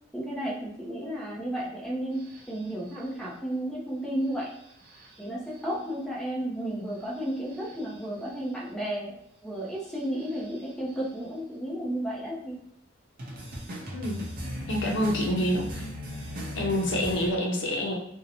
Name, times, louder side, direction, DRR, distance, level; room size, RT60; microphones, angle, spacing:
voice 1, 0.1-4.5 5.2-12.6, right 1 dB, 5° left, -4 dB, 0.5 m, -33 dB
sound 1, 2.1-3.1 4.3-5.2 5.5-5.7 7.0-8.4 9.7-11.1 13.2-17.3, equal, 55° right, 0.6 m, -39 dB
voice 2, 14.7-15.9 16.6-17.9, equal, 75° left, -1 dB, 0.6 m, -27 dB
2.6 x 2.1 x 2.8 m, 0.71 s
head